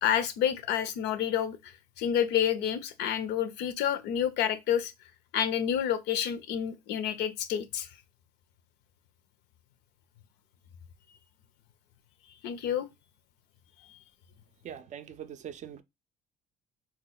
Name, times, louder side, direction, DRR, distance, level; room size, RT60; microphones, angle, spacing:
voice 1, 0.0-1.6 2.0-4.9 5.3-7.9 12.4-12.9, left 9 dB, 80° left, 0.5 m, -29 dB
voice 2, 14.6-15.8, right 9 dB, 45° right, 0.4 m, -42 dB
2.9 x 2.2 x 3.8 m
cardioid pair, 110°, 17 cm